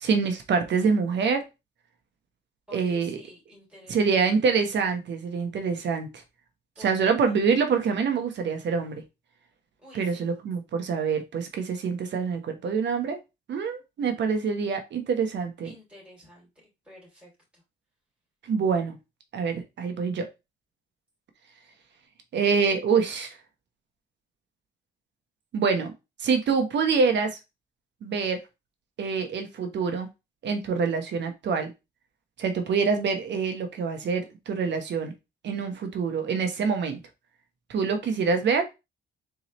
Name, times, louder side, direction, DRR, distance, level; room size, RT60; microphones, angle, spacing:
voice 1, 0.0-1.5 2.7-3.2 3.9-6.1 6.8-9.0 9.9-13.2 13.5-15.7 18.5-19.0 19.3-20.3 22.3-23.4 25.5-25.9 26.2-27.4 28.0-28.4 29.0-30.1 30.4-31.7 32.4-35.1 35.4-37.0 37.7-38.7, right 5 dB, 65° right, 1.1 m, -26 dB
voice 2, 2.7-4.1 6.7-7.4 9.8-10.2 15.6-16.5 16.8-17.3, left 1 dB, 5° right, 3.0 m, -50 dB
4.1 x 3.6 x 3.1 m
cardioid pair, 90°, 20 cm